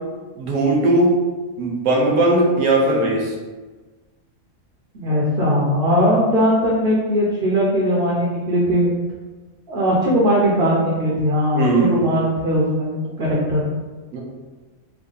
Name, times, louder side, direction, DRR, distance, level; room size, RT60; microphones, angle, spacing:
voice 1, 0.4-1.1 1.6-3.3 11.5-12.1 14.1-14.2, right 2 dB, 70° right, -1 dB, 1.1 m, -18 dB
voice 2, 4.9-8.9 9.7-13.6, equal, 55° right, -5 dB, 0.7 m, -19 dB
3.4 x 2.2 x 3.8 m, 1.3 s
omnidirectional pair, 1.4 m